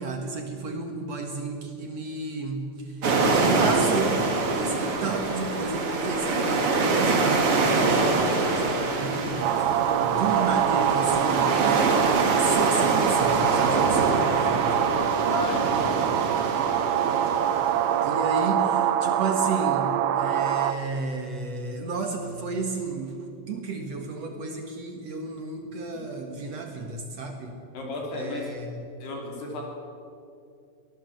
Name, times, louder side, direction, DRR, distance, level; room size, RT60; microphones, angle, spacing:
voice 1, 0.0-3.1 3.3-4.2 4.5-11.6 12.4-14.9 18.0-23.2 23.5-27.6 28.1-28.9, right 3 dB, 60° right, 4 dB, 1.8 m, -32 dB
sound 1, 3.0-18.1, right 3 dB, 40° right, 2.2 m, -25 dB
sound 2, 9.4-20.7, right 11 dB, 75° right, 2.7 m, -24 dB
voice 2, 15.3-15.8 27.7-28.5 29.0-29.6, left 2 dB, 60° left, 0 dB, 4.9 m, -32 dB
24.0 x 18.0 x 7.7 m, 2.5 s
omnidirectional pair, 5.3 m